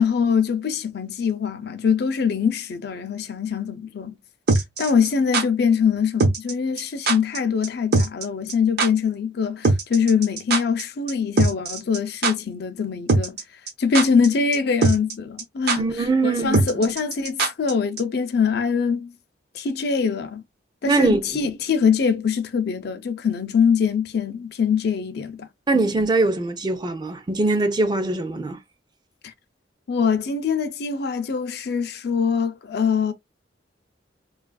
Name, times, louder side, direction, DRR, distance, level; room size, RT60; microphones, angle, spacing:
voice 1, 0.0-4.2 4.8-13.4 13.8-19.1 19.5-20.4 20.8-25.5 25.7-25.9 29.2-29.3 29.9-33.1, left 6 dB, 60° left, 0.5 m, -23 dB
sound 1, 4.5-5.4 6.2-6.5 6.8-6.9 7.1-7.4 7.6-7.7 7.9-8.2 8.5-8.6 8.8-8.9 9.6-10.8 11.1-11.2 11.4-12.0 12.2-12.3 13.1-13.4 13.7-14.3 14.5-14.6 14.8-15.1 15.4-15.5 15.7-15.8 16.5-17.7 18.0-18.1, right 3 dB, 60° right, 0.8 m, -20 dB
voice 2, 15.8-16.9 20.9-21.5 25.7-28.6, right 3 dB, 25° right, 0.4 m, -22 dB
3.1 x 2.3 x 2.3 m
head